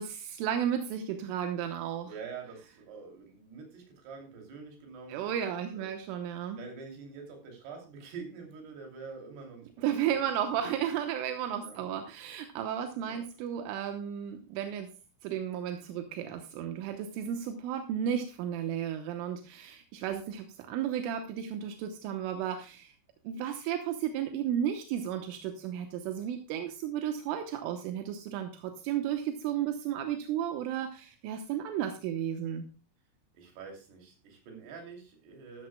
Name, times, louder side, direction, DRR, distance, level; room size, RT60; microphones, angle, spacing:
voice 1, 0.0-2.1 5.1-6.6 9.8-14.9 15.2-22.9 23.3-32.7, right 9 dB, 85° right, 6 dB, 3.5 m, -33 dB
voice 2, 2.0-5.9 6.6-10.3 11.6-11.8 13.0-13.2 33.3-35.7, right 5 dB, 60° right, 2 dB, 4.7 m, -46 dB
13.0 x 13.0 x 2.2 m, 0.33 s
omnidirectional pair, 5.6 m